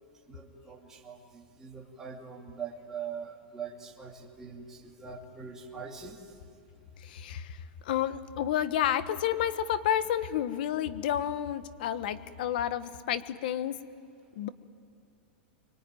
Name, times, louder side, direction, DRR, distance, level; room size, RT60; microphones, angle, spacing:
voice 1, 0.3-6.2, right 6 dB, 10° right, -3 dB, 2.8 m, -42 dB
voice 2, 7.0-13.8 14.3-14.5, left 10 dB, 60° left, 13 dB, 1.3 m, -30 dB
25.5 x 24.5 x 9.3 m, 2.6 s
supercardioid pair, 165°, 5 cm